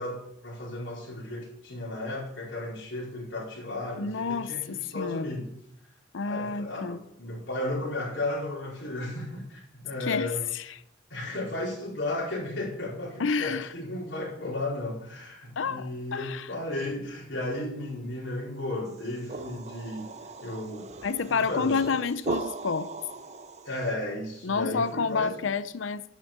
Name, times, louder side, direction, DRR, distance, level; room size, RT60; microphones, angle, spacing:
voice 1, 0.0-5.5 6.2-10.4 11.1-20.1 20.4-20.9 21.3-22.0 23.6-25.3, left 2 dB, 65° left, 4.5 m, -34 dB
voice 2, 4.0-5.3 6.1-7.0 10.0-10.6 13.2-13.7 15.6-16.5 21.0-22.9 24.4-26.0, left 5 dB, 80° left, 0.6 m, -29 dB
sound 1, 18.9-23.9, right 3 dB, 35° right, 0.6 m, -38 dB
11.5 x 6.4 x 7.3 m
head